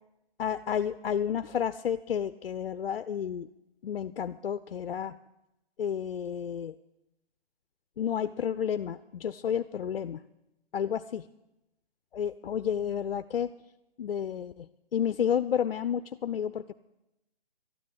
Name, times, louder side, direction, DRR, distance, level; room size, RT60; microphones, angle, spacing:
voice 1, 0.4-3.5 3.8-5.2 5.8-6.7 8.0-10.2 10.7-11.2 12.1-13.5 14.0-16.7, left 8 dB, 65° left, 12 dB, 0.5 m, -31 dB
12.5 x 10.0 x 8.7 m, 0.90 s
hypercardioid pair, 175°, 31 cm